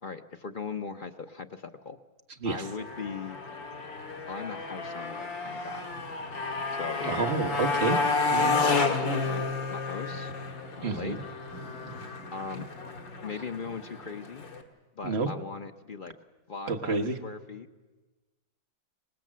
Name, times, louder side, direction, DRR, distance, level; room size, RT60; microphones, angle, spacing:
voice 1, 0.0-2.0 2.4-3.4 4.3-5.9 6.8-7.1 7.9-8.0 8.3-10.3 10.8-11.2 12.3-12.7 13.2-14.4 15.0-16.1 16.5-17.7, left 4 dB, 45° left, 5 dB, 0.6 m, -39 dB
Motorcycle, 2.5-14.6, left 3 dB, 80° left, 2.6 m, -31 dB
voice 2, 7.0-8.0 8.3-8.6 10.8-11.2 11.8-12.1 12.6-12.7 15.0-15.3 16.7-17.2, right 3 dB, 35° right, 5 dB, 1.5 m, -29 dB
25.0 x 19.5 x 7.5 m, 1.2 s
omnidirectional pair, 2.0 m